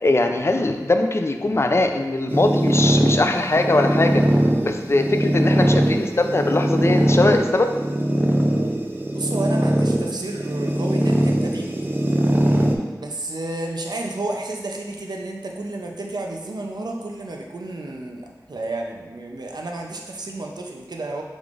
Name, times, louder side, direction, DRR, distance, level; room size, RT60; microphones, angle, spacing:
voice 1, 0.0-4.2 4.6-7.7, left 2 dB, 40° left, 5 dB, 0.4 m, -21 dB
sound 1, 2.3-12.8, right 1 dB, 30° right, 0.4 m, -21 dB
voice 2, 9.1-11.7 13.0-21.2, right 2 dB, 80° right, 1 dB, 0.5 m, -31 dB
4.8 x 3.6 x 2.5 m, 1.3 s
wide cardioid pair, 45°, 7 cm